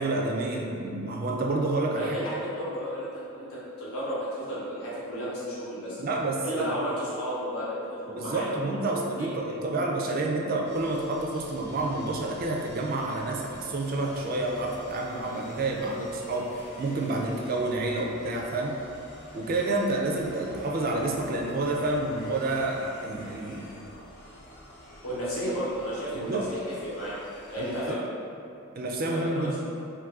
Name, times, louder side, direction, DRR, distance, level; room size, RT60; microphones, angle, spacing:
voice 1, 0.0-2.2 6.0-6.9 8.2-18.8 19.3-23.7 26.1-26.5 27.6-28.0 28.8-29.6, right 2 dB, 40° right, 0 dB, 0.3 m, -29 dB
voice 2, 1.9-6.0 6.4-9.3 25.0-27.2 27.5-28.0 29.1-29.5, equal, 85° left, -8 dB, 0.9 m, -33 dB
sound 1, 10.6-27.9, equal, 55° left, 0.8 m, -48 dB
2.6 x 2.6 x 3.5 m, 2.6 s
head